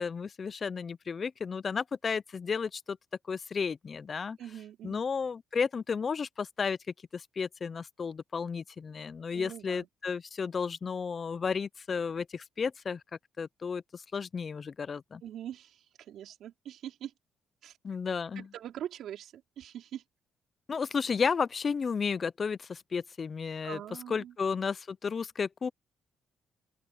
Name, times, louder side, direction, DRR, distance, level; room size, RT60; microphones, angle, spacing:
voice 1, 0.0-3.0 3.3-4.4 4.8-6.8 7.1-13.0 13.4-15.2 17.8-18.5 20.7-23.8 24.1-25.7, left 5 dB, 40° left, 0.5 m, -33 dB
voice 2, 4.4-5.0 9.3-9.9 15.2-17.1 17.6-17.7 18.4-20.0 23.6-24.3, right 11 dB, 75° right, 4.8 m, -43 dB
open air
cardioid pair, 90°, 0 cm